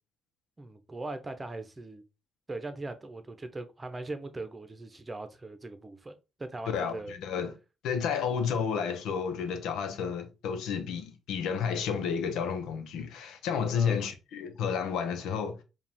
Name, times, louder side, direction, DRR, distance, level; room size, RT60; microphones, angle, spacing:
voice 1, 0.6-2.0 2.5-7.1 13.7-14.1, right 2 dB, 20° right, 0.8 m, -40 dB
voice 2, 6.7-7.6 7.8-15.6, left 6 dB, 85° left, 0.8 m, -31 dB
4.9 x 2.4 x 3.5 m
cardioid pair, 90°, 0 cm